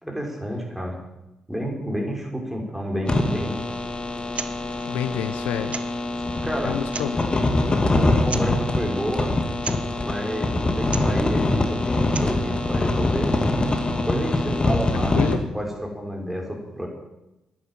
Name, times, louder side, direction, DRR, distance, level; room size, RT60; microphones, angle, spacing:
voice 1, 0.0-1.0 1.5-3.7 6.1-7.1 7.9-9.3 10.0-13.3 14.1-16.9, equal, 5° right, 0 dB, 5.6 m, -29 dB
sound 1, 3.1-15.3, left 2 dB, 30° left, 2.3 m, -24 dB
sound 2, 4.3-4.5 4.8-4.9 5.7-6.1 6.8-7.3 8.3-8.6 9.6-9.9 10.8-11.2 12.0-12.4, right 5 dB, 45° right, 1.0 m, -34 dB
voice 2, 4.8-5.8 6.6-7.5 14.9-15.4, left 10 dB, 75° left, 10 dB, 0.9 m, -29 dB
11.0 x 10.0 x 9.1 m, 0.97 s
hypercardioid pair, 40°, 3 cm